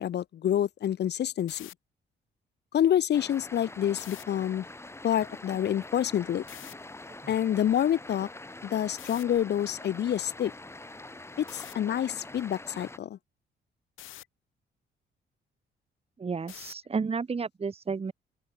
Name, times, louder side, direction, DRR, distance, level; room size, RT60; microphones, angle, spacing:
voice 1, 0.0-1.7 2.7-4.6 5.0-6.4 7.3-8.3 8.6-10.5 11.4-13.2, left 10 dB, 60° left, 0.9 m, -27 dB
sound 1, 1.4-1.7 3.9-4.2 6.5-6.7 9.0-9.2 11.5-11.7 14.0-14.2 16.5-16.9, left 15 dB, 90° left, 3.3 m, -45 dB
sound 2, 3.1-13.0, left 2 dB, 15° left, 2.5 m, -45 dB
voice 2, 16.2-18.1, right 5 dB, 30° right, 1.7 m, -32 dB
open air
cardioid pair, 90°, 20 cm